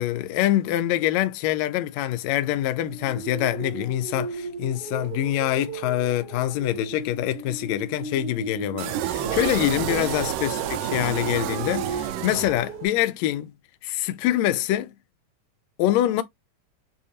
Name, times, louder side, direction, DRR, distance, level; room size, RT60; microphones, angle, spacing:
voice 1, 0.0-13.5 13.8-14.9 15.8-16.2, left 13 dB, 80° left, 1.6 m, -25 dB
sound 1, 2.3-12.9, right 4 dB, 70° right, 2.9 m, -37 dB
sound 2, 8.8-13.0, right 11 dB, 85° right, 2.3 m, -29 dB
6.7 x 2.8 x 2.8 m
omnidirectional pair, 3.8 m